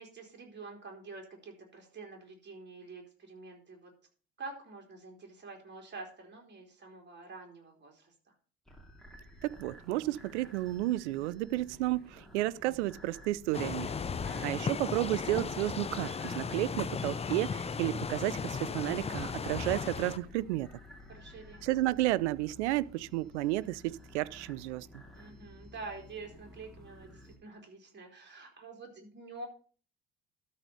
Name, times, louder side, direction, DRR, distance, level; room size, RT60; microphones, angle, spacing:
voice 1, 0.0-3.9 4.4-8.1 14.2-14.6 21.1-21.6 25.1-29.5, right 3 dB, 30° right, 3.7 m, -47 dB
sound 1, 8.7-27.4, left 1 dB, ahead, 2.8 m, -54 dB
voice 2, 9.4-14.0 14.4-20.7 21.6-24.9, right 17 dB, 70° right, 0.5 m, -32 dB
sound 2, 13.5-20.2, left 5 dB, 15° left, 0.6 m, -36 dB
12.5 x 4.2 x 6.6 m
figure-of-eight pair, 60°, 36 cm